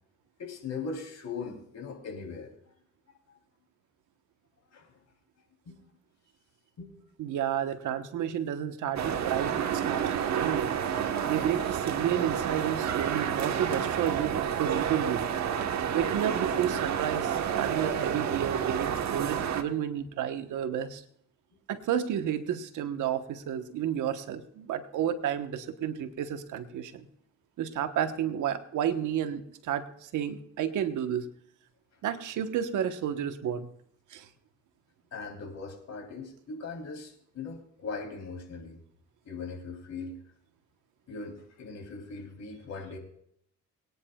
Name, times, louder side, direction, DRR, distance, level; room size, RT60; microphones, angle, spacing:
voice 1, 0.4-2.5 3.3-3.4 4.7-4.9 5.6-5.9 6.8-7.0 35.1-38.8 39.2-40.2 41.1-43.0, left 4 dB, 60° left, 2 dB, 3.5 m, -40 dB
voice 2, 7.2-10.7 11.3-15.3 15.9-21.0 21.7-27.1 27.6-31.3 32.0-33.7 34.1-34.3, right 9 dB, 80° right, 9 dB, 1.2 m, -31 dB
sound 1, 9.0-19.6, right 8 dB, 65° right, 1.3 m, -30 dB
23.0 x 9.7 x 2.4 m, 0.70 s
cardioid pair, 90°, 30 cm